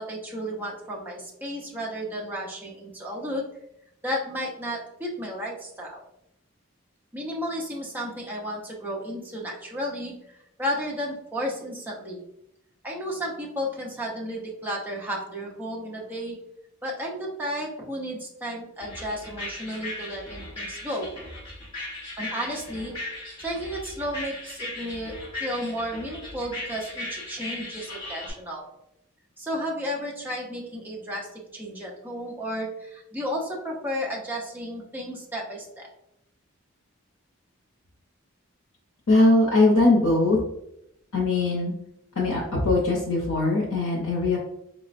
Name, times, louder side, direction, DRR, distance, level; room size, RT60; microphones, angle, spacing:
voice 1, 0.0-3.4 4.0-6.0 7.1-12.2 12.8-16.4 16.8-21.1 22.2-22.9 23.4-28.7 29.4-35.9, equal, 10° right, -3 dB, 0.5 m, -33 dB
sound 1, 18.8-28.3, left 2 dB, 20° left, 1.0 m, -38 dB
voice 2, 39.1-40.4 41.1-41.8 42.2-44.4, left 2 dB, 75° left, -4 dB, 0.6 m, -21 dB
4.3 x 2.0 x 2.4 m, 0.79 s
head